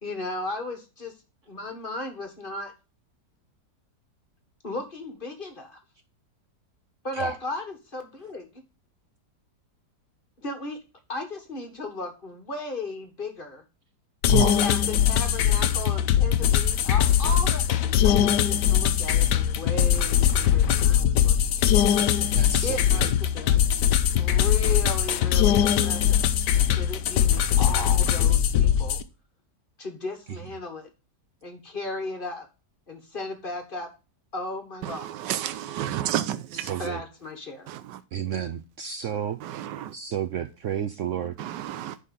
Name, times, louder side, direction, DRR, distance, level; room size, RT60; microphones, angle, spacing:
voice 1, 0.0-1.1 1.5-2.7 4.6-5.8 7.0-8.5 10.4-10.8 11.1-13.6 14.6-17.6 18.0-21.7 22.6-23.7 24.1-26.3 26.8-29.0 29.8-30.9 31.4-32.5 32.9-33.9 34.3-35.4 36.8-37.7, left 2 dB, 30° left, 1.6 m, -35 dB
sound 1, 14.2-29.0, left 10 dB, 75° left, 1.3 m, -21 dB
voice 2, 14.3-14.6 22.3-23.1 36.5-37.0 38.1-39.4 39.9-41.4, right 9 dB, 70° right, 0.7 m, -30 dB
voice 3, 35.2-36.7 37.7-37.8 39.6-39.9 41.4-41.9, right 12 dB, 90° right, 1.2 m, -30 dB
10.0 x 4.2 x 5.3 m
omnidirectional pair, 1.8 m